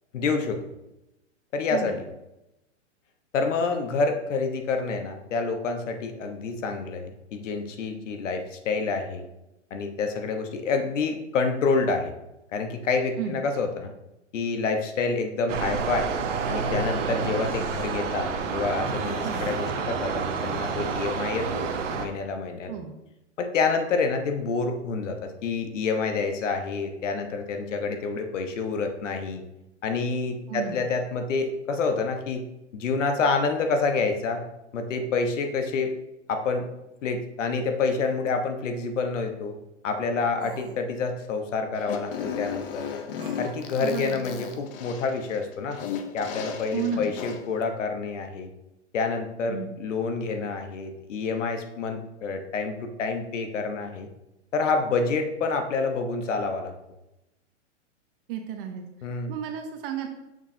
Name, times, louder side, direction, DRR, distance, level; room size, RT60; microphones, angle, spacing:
voice 1, 0.1-0.6 1.5-2.1 3.3-9.2 9.7-12.1 12.5-13.9 14.3-16.1 16.5-21.7 22.0-22.8 23.4-29.4 29.8-32.4 32.7-34.4 34.7-35.9 36.3-36.7 37.0-39.6 39.8-42.8 43.4-45.8 46.1-48.5 48.9-54.1 54.5-56.7 59.0-59.3, left 4 dB, 75° left, 5 dB, 1.1 m, -28 dB
sound 1, 15.5-22.1, right 5 dB, 75° right, 1.1 m, -29 dB
voice 2, 30.5-30.8 43.8-44.3 46.7-47.1 49.5-49.7 58.3-58.8 59.3-60.1, right 7 dB, 45° right, 4 dB, 0.9 m, -32 dB
sound 2, 38.1-38.2 40.4-40.8 43.2-43.7, right 5 dB, 15° right, 0.3 m, -46 dB
Fart, 41.7-47.5, left 8 dB, 45° left, 0.8 m, -35 dB
6.6 x 6.1 x 2.7 m, 0.93 s
hypercardioid pair, 125°, 37 cm